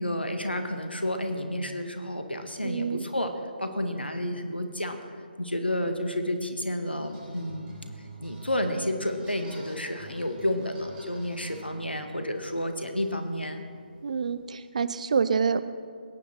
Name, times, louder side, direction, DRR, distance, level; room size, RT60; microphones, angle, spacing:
voice 1, 0.0-3.3 3.6-5.0 5.4-7.7 8.2-13.6, left 1 dB, 85° left, 6 dB, 1.6 m, -30 dB
voice 2, 2.6-3.0 14.0-15.6, right 6 dB, 45° right, 14 dB, 0.6 m, -27 dB
sound 1, 6.8-14.4, right 2 dB, 15° right, 3.9 m, -48 dB
21.5 x 10.0 x 4.4 m, 2.1 s
figure-of-eight pair, 145°, 5 cm